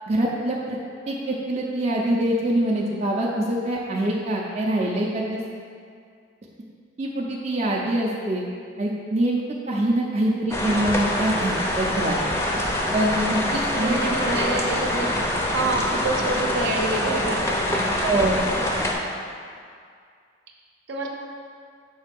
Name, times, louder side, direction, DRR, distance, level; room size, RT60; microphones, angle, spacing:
voice 1, 0.1-0.8 1.1-5.4 7.0-8.4 8.8-9.4 9.7-12.2 12.9-14.0 18.0-18.4, right 1 dB, 35° right, -3 dB, 0.5 m, -24 dB
sound 1, 10.5-18.9, left 1 dB, 15° left, 0.5 m, -25 dB
voice 2, 13.8-15.2 15.5-18.1 20.9-21.1, right 2 dB, 65° right, 0 dB, 0.7 m, -27 dB
6.3 x 3.2 x 5.2 m, 2.2 s
head